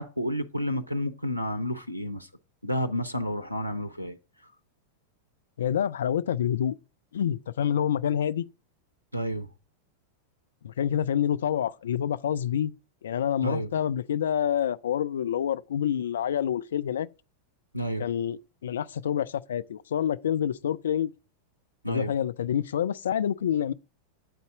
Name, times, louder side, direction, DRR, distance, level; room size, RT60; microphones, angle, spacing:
voice 1, 0.0-2.3 2.6-4.2 9.1-9.5 13.4-13.7 17.7-18.1 21.8-22.1, equal, 90° right, 0.4 m, -30 dB
voice 2, 5.6-6.8 7.1-8.4 10.6-12.7 13.0-17.1 18.0-21.1 21.9-23.7, left 9 dB, 65° left, 0.3 m, -27 dB
8.0 x 4.0 x 4.9 m
figure-of-eight pair, 90°, 0 cm